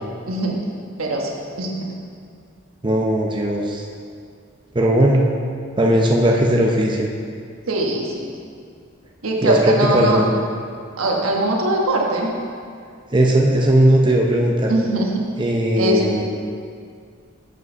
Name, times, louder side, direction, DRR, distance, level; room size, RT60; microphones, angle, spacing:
voice 1, 0.3-0.6 1.0-1.3 1.6-1.9 7.7-8.3 9.2-10.2 11.0-12.3 14.7-15.2 15.8-16.2, right 1 dB, 85° right, -1 dB, 1.2 m, -21 dB
voice 2, 2.8-3.8 4.7-5.2 5.8-7.1 9.4-10.3 13.1-14.7 15.4-16.2, right 1 dB, 20° right, 0 dB, 0.6 m, -17 dB
8.1 x 5.4 x 5.4 m, 2.2 s
head